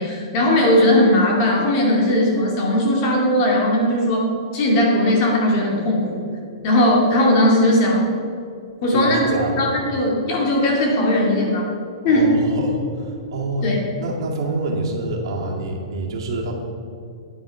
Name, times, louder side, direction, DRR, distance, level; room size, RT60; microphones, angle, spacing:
voice 1, 0.0-4.3 4.5-6.2 6.6-8.1 8.8-9.3 9.6-11.7 12.0-12.3 13.6-13.8, left 1 dB, 35° left, -2 dB, 2.5 m, -18 dB
voice 2, 8.9-9.6 12.0-13.7 14.0-16.5, right 2 dB, 60° right, -1 dB, 2.2 m, -26 dB
9.6 x 9.5 x 4.9 m, 2.4 s
hypercardioid pair, 165°, 3 cm